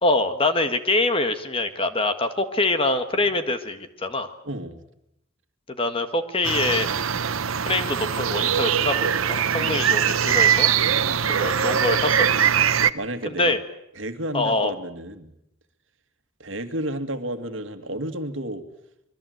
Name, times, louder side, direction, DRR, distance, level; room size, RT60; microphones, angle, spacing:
voice 1, 0.0-4.3 5.8-6.9 7.6-10.7 11.3-12.5 13.3-13.6 14.3-14.7, left 2 dB, 25° left, 8 dB, 1.6 m, -24 dB
voice 2, 4.4-4.8 9.6-9.8 11.0-11.2 12.9-13.5 14.0-15.3 16.4-18.6, right 1 dB, 65° right, 7 dB, 2.1 m, -32 dB
sound 1, 6.4-12.9, right 8 dB, 80° right, 0.9 m, -22 dB
25.5 x 22.5 x 8.0 m, 0.80 s
head